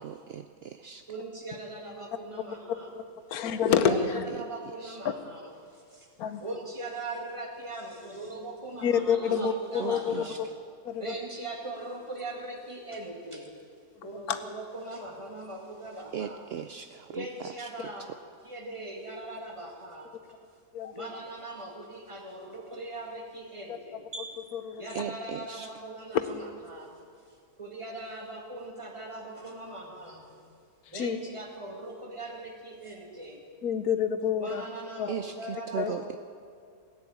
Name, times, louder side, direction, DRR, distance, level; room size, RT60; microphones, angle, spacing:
voice 1, 0.0-1.0 3.7-4.1 4.4-5.0 9.3-10.5 16.1-18.2 24.9-25.7 35.1-36.2, right 8 dB, 70° right, 10 dB, 0.6 m, -38 dB
voice 2, 1.1-2.9 3.6-4.0 4.4-5.4 5.9-6.1 6.4-10.3 11.0-13.5 14.0-16.4 17.1-18.1 18.5-20.1 20.9-24.3 24.8-26.2 26.7-26.9 27.6-30.2 30.9-33.4 34.4-36.2, right 2 dB, 20° right, 1 dB, 2.2 m, -40 dB
voice 3, 3.3-4.2 5.0-5.1 6.2-6.6 8.8-10.5 10.8-11.2 14.1-14.5 20.7-21.1 23.7-24.0 24.5-25.0 30.9-31.2 33.6-34.7 35.0-35.1 35.8-35.9, left 8 dB, 85° left, 11 dB, 1.4 m, -28 dB
16.5 x 10.0 x 8.7 m, 2.3 s
omnidirectional pair, 1.5 m